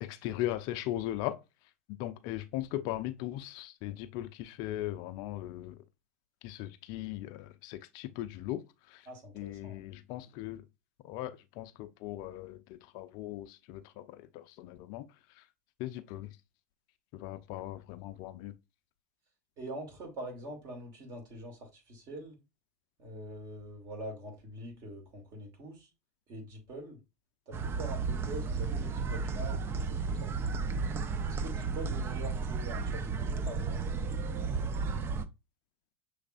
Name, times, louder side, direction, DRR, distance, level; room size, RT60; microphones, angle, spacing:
voice 1, 0.0-1.4 1.9-5.8 6.4-8.6 8.9-9.1 9.3-10.7 11.0-15.5 15.8-16.4 17.1-18.5, left 14 dB, 55° left, 0.5 m, -39 dB
voice 2, 9.1-9.8 19.6-22.4 23.0-25.9 26.3-27.0 27.5-30.4 31.2-33.8, right 1 dB, 45° right, 2.3 m, -44 dB
sound 1, 27.5-35.3, right 4 dB, 30° right, 0.5 m, -33 dB
6.3 x 3.2 x 2.5 m
hypercardioid pair, 100°, 8 cm